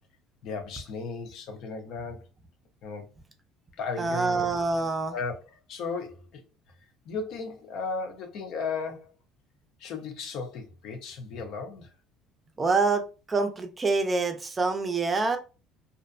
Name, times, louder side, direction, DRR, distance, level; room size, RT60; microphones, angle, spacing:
voice 1, 0.4-2.3 2.8-3.1 3.8-4.6 5.1-6.4 7.1-9.1 9.8-11.9, left 4 dB, 65° left, 0.6 m, -35 dB
voice 2, 4.0-5.2 12.6-13.0 13.3-15.4, right 3 dB, 25° right, 0.4 m, -26 dB
2.5 x 2.1 x 2.5 m
supercardioid pair, 105°, 0 cm